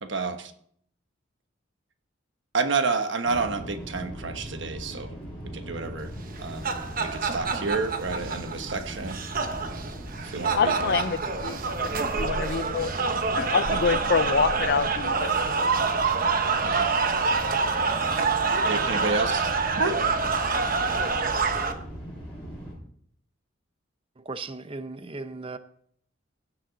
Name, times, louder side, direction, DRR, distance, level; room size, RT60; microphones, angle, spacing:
voice 1, 0.0-0.5 2.5-5.1 5.5-6.1 6.4-6.7 7.0-9.2 10.2-11.0 16.6-16.9 18.5-19.5 19.8-19.9 20.4-20.5, right 4 dB, 65° right, 1.2 m, -29 dB
sound 1, 3.2-22.7, equal, 5° left, 6.1 m, -39 dB
sound 2, 6.3-21.7, right 4 dB, 45° right, 1.0 m, -26 dB
voice 2, 10.6-12.9 13.3-15.6, left 6 dB, 55° left, 0.5 m, -27 dB
voice 3, 24.2-25.6, right 3 dB, 30° right, 0.6 m, -37 dB
16.0 x 7.7 x 4.0 m
head